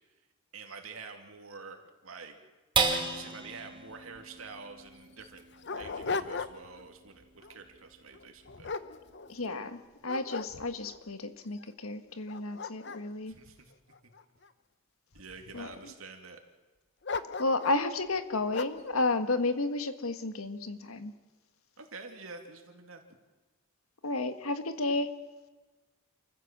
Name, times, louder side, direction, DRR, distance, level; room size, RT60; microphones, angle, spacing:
voice 1, 0.5-2.4 3.1-5.4 5.8-8.7 13.3-13.7 14.0-14.1 15.1-16.4 21.8-23.0, right 4 dB, 80° right, 4 dB, 2.6 m, -47 dB
sound 1, 2.7-9.4 9.9-10.0 10.4-10.9, right 4 dB, 25° right, 2.8 m, -36 dB
Dog, 4.1-4.2 4.5-4.6 5.2-6.8 7.2-7.5 8.1-9.6 10.1-11.0 11.6-11.7 12.1-14.5 15.1-15.8 17.0-17.8 18.5-18.9, left 4 dB, 55° left, 0.9 m, -38 dB
voice 2, 9.3-13.3 15.5-15.7 17.4-21.1 24.0-25.1, left 2 dB, 90° left, 9 dB, 1.6 m, -32 dB
28.0 x 15.0 x 7.5 m, 1.2 s
head